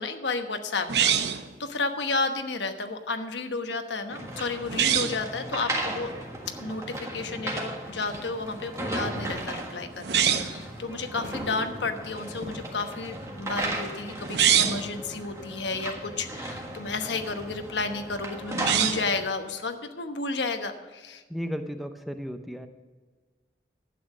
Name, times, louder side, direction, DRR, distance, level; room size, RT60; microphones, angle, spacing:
voice 1, 0.0-6.1 6.6-21.2, left 3 dB, 85° left, 7 dB, 1.1 m, -32 dB
sound 1, 0.9-1.5 4.7-5.2 10.0-10.6 14.2-14.9 18.5-19.1, right 9 dB, 75° right, 0.7 m, -24 dB
sound 2, 4.1-19.2, right 1 dB, 15° right, 1.6 m, -36 dB
sound 3, 8.0-13.9, equal, 50° right, 2.4 m, -44 dB
voice 2, 21.3-22.7, equal, ahead, 7 dB, 0.6 m, -34 dB
12.0 x 8.7 x 6.3 m, 1.4 s
head